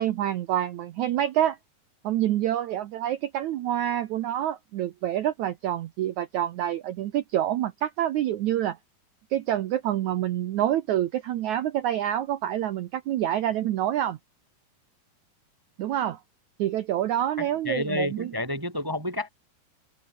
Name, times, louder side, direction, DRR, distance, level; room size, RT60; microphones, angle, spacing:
voice 1, 0.0-1.6 2.0-8.8 9.3-14.2 15.8-16.2 16.6-18.3, right 12 dB, 75° right, 1.7 m, -27 dB
voice 2, 17.4-19.3, left 1 dB, 20° right, 0.5 m, -30 dB
omnidirectional pair, 4.5 m